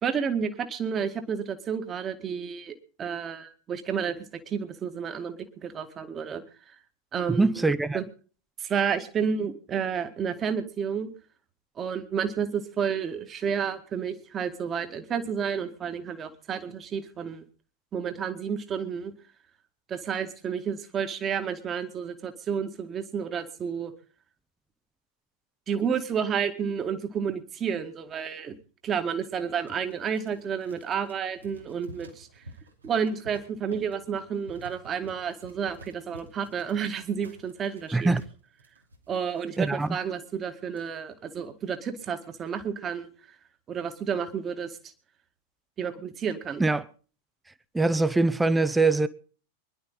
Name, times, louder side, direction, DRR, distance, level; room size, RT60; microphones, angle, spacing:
voice 1, 0.0-6.4 7.1-7.6 7.9-8.1 8.6-11.1 11.8-17.4 17.9-19.1 19.9-23.9 25.7-28.6 28.8-32.3 32.8-38.1 39.1-43.1 43.7-44.8 45.8-46.6, right 7 dB, 25° right, 2.0 m, -31 dB
voice 2, 7.3-8.0 37.9-38.2 39.6-39.9 46.6-46.8 47.7-49.1, right 3 dB, 5° right, 0.9 m, -23 dB
sound 1, 29.7-40.0 40.4-40.5 40.7-41.4 41.8-42.1, right 1 dB, 75° right, 2.6 m, -51 dB
24.5 x 11.5 x 4.1 m
figure-of-eight pair, 90°, 0 cm